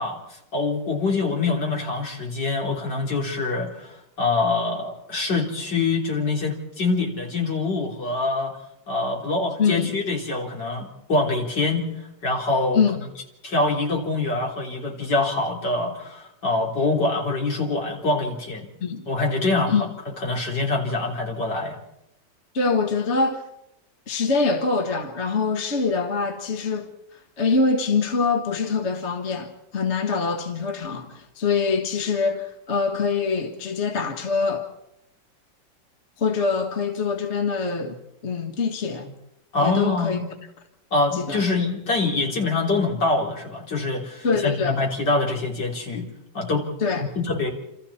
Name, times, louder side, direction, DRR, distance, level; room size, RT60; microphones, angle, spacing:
voice 1, 0.0-8.5 8.9-11.9 12.2-12.8 13.4-18.7 19.1-19.9 20.2-21.8 39.5-40.2 40.9-46.1 46.3-46.6 46.9-47.5, left 3 dB, 65° left, 4.5 m, -25 dB
voice 2, 9.6-9.9 12.7-13.0 18.8-19.1 19.7-19.9 22.5-23.4 24.1-34.7 36.2-39.1 39.6-40.2 41.1-41.4 44.2-44.8 46.8-47.1, left 4 dB, 40° left, 1.7 m, -24 dB
28.0 x 28.0 x 4.3 m
omnidirectional pair, 2.0 m